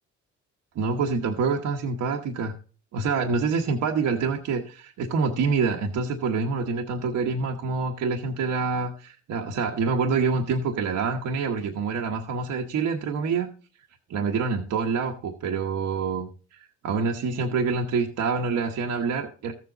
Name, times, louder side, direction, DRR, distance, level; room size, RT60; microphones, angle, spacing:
voice 1, 0.7-2.5 2.9-13.5 14.1-19.5, right 5 dB, 75° right, 2 dB, 1.1 m, -26 dB
13.5 x 7.5 x 4.0 m, 0.38 s
cardioid pair, 90°, 30 cm